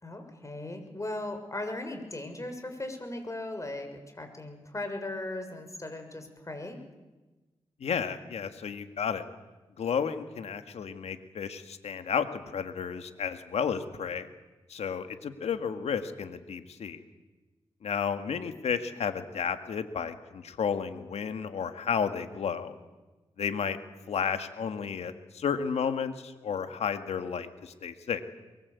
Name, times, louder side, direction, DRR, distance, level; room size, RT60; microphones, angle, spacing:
voice 1, 0.0-6.8, left 2 dB, 30° left, 6 dB, 6.4 m, -38 dB
voice 2, 7.8-9.2 9.8-14.3 14.7-17.0 17.8-22.7 23.4-23.8 24.1-28.2, left 7 dB, 85° left, 9 dB, 2.0 m, -32 dB
23.5 x 23.5 x 8.4 m, 1.2 s
cardioid pair, 50°, 11 cm